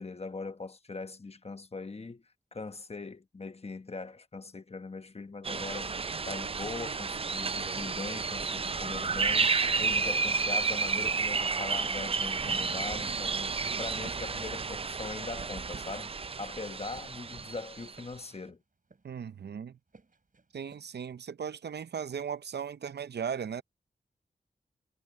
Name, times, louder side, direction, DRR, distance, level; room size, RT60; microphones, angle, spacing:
voice 1, 0.0-2.2 2.5-5.9 6.3-9.5 9.8-16.1 16.4-18.6, left 3 dB, 35° left, 1.2 m, -41 dB
sound 1, 5.4-18.0, right 4 dB, 35° right, 0.4 m, -31 dB
sound 2, 17.9-19.3 19.9-21.1, right 4 dB, 50° right, 7.1 m, -57 dB
voice 2, 19.0-19.8 20.5-23.6, right 7 dB, 75° right, 0.6 m, -37 dB
wide cardioid pair, 70°, 17 cm